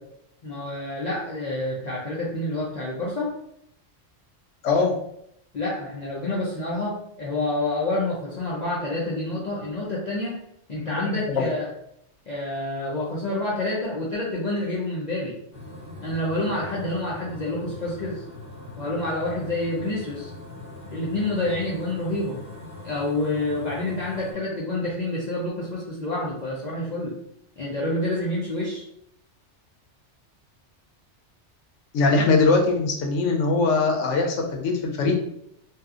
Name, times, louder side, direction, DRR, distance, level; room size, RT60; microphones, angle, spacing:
voice 1, 0.4-3.3 5.5-10.3 10.7-11.7 12.3-15.3 16.0-18.2 18.8-20.3 20.9-22.4 22.8-27.2 27.6-28.8, left 2 dB, 55° left, -6 dB, 0.5 m, -28 dB
voice 2, 4.6-4.9 10.8-11.5 31.9-35.1, left 3 dB, 90° left, 2 dB, 0.9 m, -22 dB
sound 1, 15.5-24.3, left 2 dB, 15° right, 1.0 m, -41 dB
2.6 x 2.3 x 2.4 m, 0.74 s
omnidirectional pair, 1.2 m